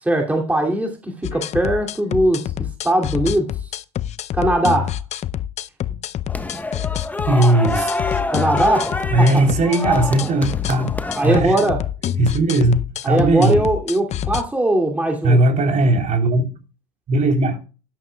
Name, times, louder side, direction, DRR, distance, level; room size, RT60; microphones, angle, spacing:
voice 1, 0.0-3.5 4.3-5.0 8.3-8.9 9.2-9.4 11.1-11.8 13.0-15.4, right 1 dB, 10° right, 2.6 m, -20 dB
sound 1, 1.2-14.4, left 11 dB, 35° left, 0.6 m, -27 dB
sound 2, 6.3-11.4, left 2 dB, 10° left, 1.1 m, -26 dB
voice 2, 7.3-7.9 9.1-11.6 12.2-13.6 15.2-16.5 17.1-17.6, right 2 dB, 40° right, 3.5 m, -18 dB
13.0 x 11.5 x 2.3 m
hypercardioid pair, 90°, 19 cm